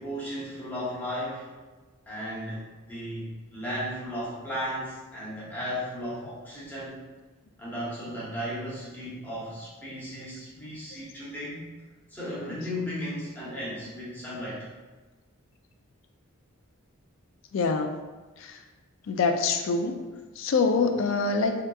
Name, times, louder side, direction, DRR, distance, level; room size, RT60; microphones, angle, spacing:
voice 1, 0.0-1.5 2.1-7.0 7.6-11.7 12.1-14.7, equal, 10° left, -8 dB, 0.8 m, -35 dB
voice 2, 17.5-18.0 18.4-18.6 19.1-19.9 20.4-21.5, left 4 dB, 60° left, 6 dB, 0.3 m, -25 dB
3.4 x 2.8 x 2.3 m, 1.3 s
head